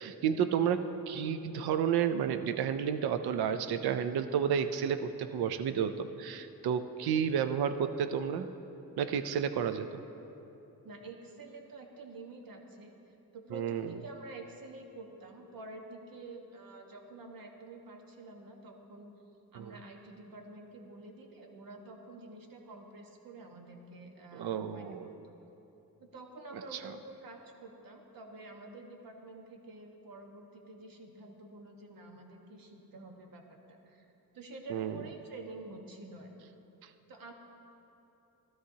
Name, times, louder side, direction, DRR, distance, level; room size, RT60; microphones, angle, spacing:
voice 1, 0.0-8.5 9.0-10.0 13.5-13.9 19.6-19.7 24.3-25.0 26.7-26.9 34.7-35.0 36.8-36.9, right 8 dB, 90° right, 10 dB, 0.5 m, -31 dB
voice 2, 10.8-12.9 13.3-19.1 19.5-25.3 26.1-34.1 34.3-36.5 37.1-37.3, right 2 dB, 65° right, 2 dB, 1.4 m, -49 dB
16.0 x 12.5 x 2.8 m, 3.0 s
cardioid pair, 95°, 37 cm